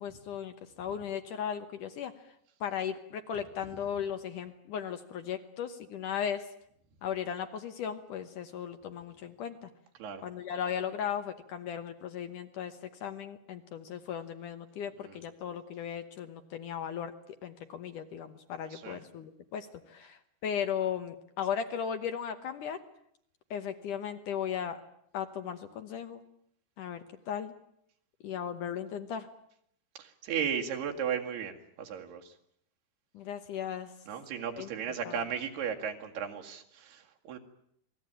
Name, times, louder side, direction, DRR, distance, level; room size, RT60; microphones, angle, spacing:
voice 1, 0.0-2.1 2.6-6.4 7.0-9.7 10.2-12.7 13.0-17.1 17.4-22.8 23.5-24.8 25.1-26.2 26.8-27.0 27.3-27.5 28.2-29.3 33.1-33.9 34.6-34.7 35.0-35.1, left 8 dB, 65° left, 8 dB, 2.3 m, -36 dB
voice 2, 30.0-32.3 34.1-37.4, right 7 dB, 80° right, 2 dB, 4.1 m, -35 dB
27.0 x 19.0 x 8.9 m, 0.71 s
omnidirectional pair, 4.6 m